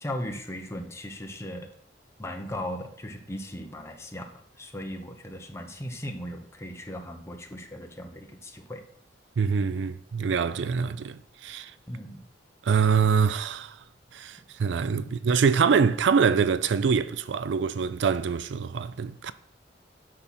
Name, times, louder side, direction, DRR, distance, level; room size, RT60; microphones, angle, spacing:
voice 1, 0.0-1.7 2.2-4.3 4.6-8.8 11.9-12.2 15.0-15.2, left 1 dB, 15° left, 1.0 m, -37 dB
voice 2, 9.4-11.7 12.6-13.8 14.1-19.3, right 6 dB, 85° right, 0.4 m, -24 dB
8.8 x 6.0 x 4.3 m
head